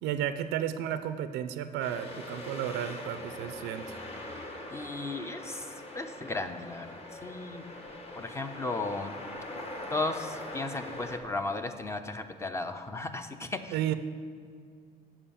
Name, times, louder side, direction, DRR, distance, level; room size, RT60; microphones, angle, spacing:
voice 1, 0.0-4.0 13.7-13.9, right 10 dB, 90° right, 10 dB, 0.5 m, -33 dB
sound 1, 1.8-11.2, left 1 dB, 35° left, 1.2 m, -42 dB
voice 2, 4.7-5.7 5.9-7.6 8.2-9.1 9.9-13.9, left 2 dB, 15° left, 8 dB, 0.5 m, -35 dB
7.1 x 5.4 x 6.9 m, 2.2 s
cardioid pair, 110°, 17 cm